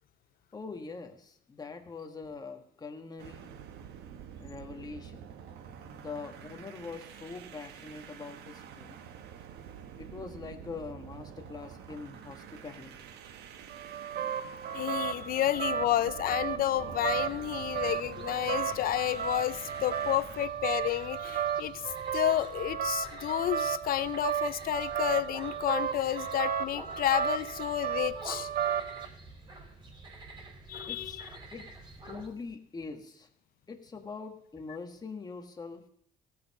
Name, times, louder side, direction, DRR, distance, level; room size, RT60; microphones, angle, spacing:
voice 1, 0.5-3.5 4.4-5.3 5.9-9.0 10.0-13.1 30.9-31.2 31.5-31.6 32.1-33.3 33.7-35.8, left 4 dB, 25° left, 4 dB, 1.6 m, -43 dB
sound 1, 3.2-20.5, right 8 dB, 80° right, 1.2 m, -48 dB
sound 2, 13.7-29.1, right 8 dB, 60° right, 0.8 m, -34 dB
voice 2, 14.7-21.8 22.1-28.5 30.7-31.3, left 13 dB, 60° left, 16 dB, 0.6 m, -31 dB
sound 3, 16.7-32.3, right 2 dB, 25° right, 4.1 m, -48 dB
16.5 x 5.7 x 6.4 m, 0.66 s
cardioid pair, 110°, 17 cm